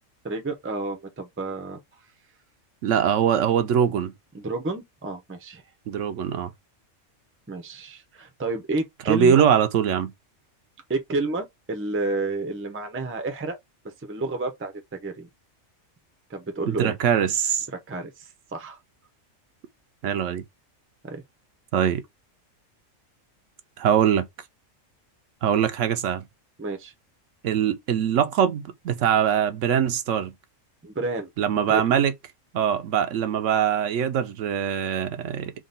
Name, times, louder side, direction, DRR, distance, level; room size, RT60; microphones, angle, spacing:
voice 1, 0.2-1.8 4.3-5.6 7.5-9.4 10.9-13.6 14.0-15.3 16.3-17.0 17.7-18.8 21.0-21.2 26.6-26.9 30.8-31.3 31.7-31.8, right 3 dB, 15° right, 0.5 m, -30 dB
voice 2, 2.8-4.1 5.9-6.5 9.1-10.1 16.7-17.7 20.0-20.4 21.7-22.0 23.8-24.3 25.4-26.2 27.4-30.3 31.4-32.1 32.5-35.5, right 8 dB, 75° right, 1.0 m, -22 dB
3.7 x 2.3 x 3.8 m
omnidirectional pair, 1.3 m